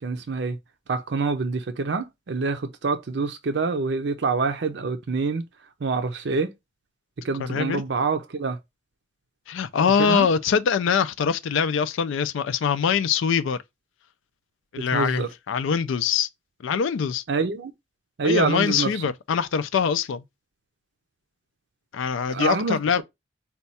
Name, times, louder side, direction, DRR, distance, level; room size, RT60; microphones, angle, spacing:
voice 1, 0.0-0.6 0.9-5.5 5.8-6.5 7.2-8.6 10.0-10.3 14.9-15.3 17.3-17.7 18.2-19.0 22.3-23.0, right 4 dB, 65° right, 0.5 m, -26 dB
voice 2, 7.4-7.8 9.5-13.6 14.7-16.3 16.6-17.2 18.2-20.2 21.9-23.0, left 6 dB, 85° left, 0.4 m, -23 dB
4.3 x 2.3 x 4.0 m
head